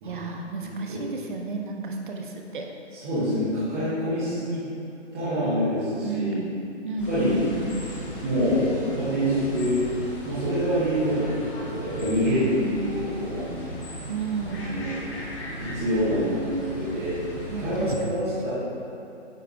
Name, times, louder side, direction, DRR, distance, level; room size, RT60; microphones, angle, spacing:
voice 1, 0.0-2.7 6.0-6.5 6.8-7.6 12.3-13.0 14.1-14.6 17.5-18.3, right 4 dB, 45° right, 2 dB, 0.7 m, -32 dB
voice 2, 0.6-1.0 2.9-4.6 5.1-6.4 7.1-7.4 8.2-9.8 10.2-13.5 14.4-14.9 15.6-17.1 17.6-18.5, equal, 10° right, -14 dB, 0.8 m, -26 dB
sound 1, 7.0-18.0, equal, 25° left, 1.1 m, -36 dB
9.0 x 3.5 x 3.4 m, 2.6 s
hypercardioid pair, 160°, 35 cm